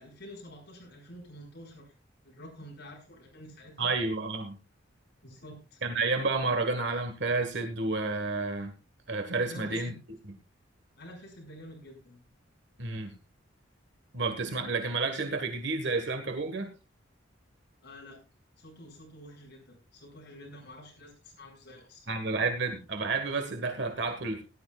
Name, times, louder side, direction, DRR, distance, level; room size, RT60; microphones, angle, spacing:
voice 1, 0.0-1.9 2.2-3.9 5.2-5.8 9.4-10.0 11.0-12.2 17.8-18.2 18.6-22.1, equal, 55° left, 0 dB, 5.7 m, -48 dB
voice 2, 3.8-4.5 5.8-8.7 9.1-9.9 12.8-13.1 14.1-16.7 22.1-24.4, right 3 dB, 60° right, 6 dB, 1.6 m, -30 dB
18.5 x 11.5 x 2.4 m, 0.30 s
head